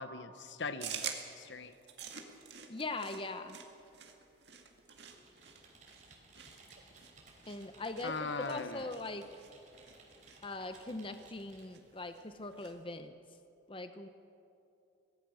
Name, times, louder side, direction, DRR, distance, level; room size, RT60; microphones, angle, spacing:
voice 1, 0.0-1.7 8.0-8.9, left 4 dB, 65° left, 11 dB, 1.0 m, -40 dB
sound 1, 0.8-12.8, right 7 dB, 60° right, 2.1 m, -49 dB
voice 2, 2.7-3.6 7.5-9.2 10.4-13.1 13.7-14.1, left 2 dB, 25° left, 8 dB, 0.8 m, -41 dB
Computer keyboard, 5.0-11.8, right 3 dB, 40° right, 4.1 m, -60 dB
24.0 x 18.0 x 6.4 m, 2.7 s
head